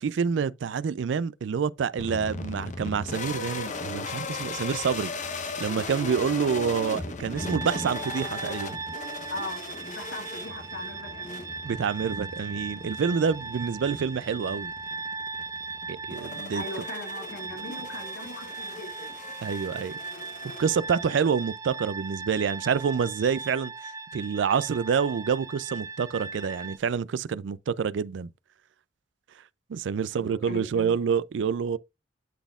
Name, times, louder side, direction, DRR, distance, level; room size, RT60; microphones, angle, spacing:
voice 1, 0.0-8.8 11.6-14.7 15.9-16.6 19.4-19.9 20.4-28.3 29.7-31.8, right 6 dB, 75° right, 0.4 m, -27 dB
sound 1, 2.0-21.2, left 3 dB, 40° left, 0.9 m, -38 dB
sound 2, 7.4-26.8, right 4 dB, 20° right, 0.4 m, -38 dB
voice 2, 9.3-11.5 16.5-19.1 30.1-31.0, left 2 dB, 90° left, 2.4 m, -39 dB
11.5 x 4.1 x 2.3 m
head